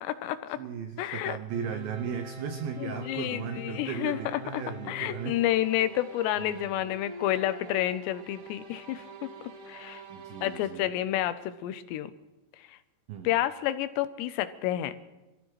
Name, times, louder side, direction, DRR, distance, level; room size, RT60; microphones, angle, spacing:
voice 1, 0.0-0.6 1.0-1.4 2.8-9.0 9.7-10.0 10.4-12.1 12.7-12.8 13.2-14.9, left 13 dB, 80° left, 12 dB, 2.9 m, -30 dB
voice 2, 0.6-5.4 6.4-6.8 10.1-10.9 13.1-13.3, right 8 dB, 90° right, 7 dB, 2.0 m, -37 dB
sound 1, 1.5-10.7, equal, 50° right, 1.6 m, -44 dB
27.0 x 15.0 x 3.2 m, 1.1 s
omnidirectional pair, 5.1 m